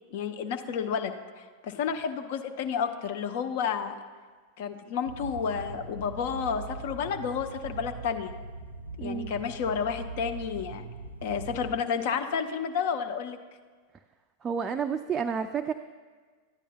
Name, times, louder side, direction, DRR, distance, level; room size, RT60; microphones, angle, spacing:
voice 1, 0.1-4.0 4.6-8.3 9.0-10.8 11.2-13.4, left 7 dB, 50° left, 7 dB, 0.6 m, -31 dB
sound 1, 5.1-11.8, right 4 dB, 85° right, 0.4 m, -41 dB
voice 2, 9.0-9.3 14.4-15.7, right 6 dB, 20° right, 7 dB, 0.3 m, -30 dB
13.5 x 9.8 x 2.2 m, 1.5 s
figure-of-eight pair, 90°, 0 cm